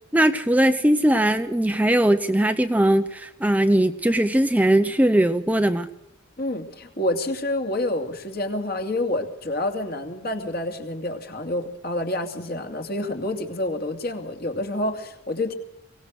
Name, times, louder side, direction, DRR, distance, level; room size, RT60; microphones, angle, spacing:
voice 1, 0.1-5.9, right 1 dB, 5° right, 8 dB, 0.7 m, -20 dB
voice 2, 6.4-15.5, left 1 dB, 45° left, 4 dB, 2.7 m, -28 dB
23.5 x 18.0 x 6.6 m, 0.79 s
head